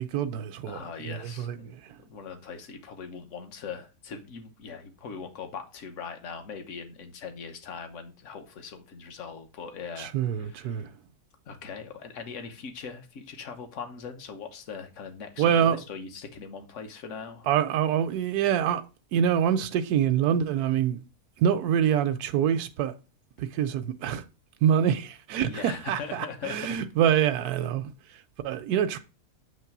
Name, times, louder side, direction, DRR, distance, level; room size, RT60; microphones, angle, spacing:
voice 1, 0.0-2.0 10.0-10.9 15.4-15.8 17.5-18.8 19.1-21.0 21.4-22.9 23.4-24.2 24.6-29.0, right 9 dB, 85° right, 1.1 m, -26 dB
voice 2, 0.7-1.7 2.0-10.8 11.5-17.5 25.4-26.8, left 6 dB, 55° left, 1.3 m, -40 dB
8.1 x 3.2 x 5.9 m
omnidirectional pair, 1.6 m